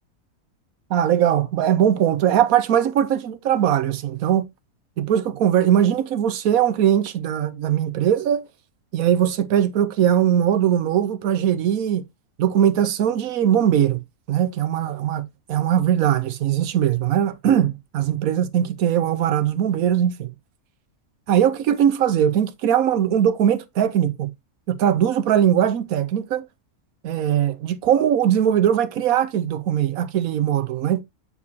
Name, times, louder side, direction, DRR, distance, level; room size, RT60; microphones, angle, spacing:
voice 1, 0.9-4.5 5.0-8.5 8.9-12.0 12.4-14.0 14.3-20.3 21.3-24.3 24.7-26.5 27.0-31.0, right 10 dB, 75° right, 1.2 m, -20 dB
8.3 x 4.8 x 2.7 m
omnidirectional pair, 1.5 m